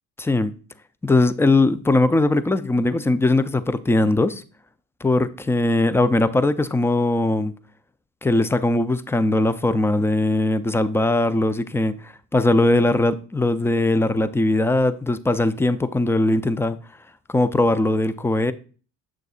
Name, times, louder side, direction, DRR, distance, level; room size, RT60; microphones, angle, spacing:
voice 1, 0.2-0.5 1.0-4.4 5.0-7.5 8.2-16.8 17.3-18.5, left 2 dB, 5° left, 0.4 m, -20 dB
7.5 x 6.5 x 2.4 m
supercardioid pair, 70°, 40 cm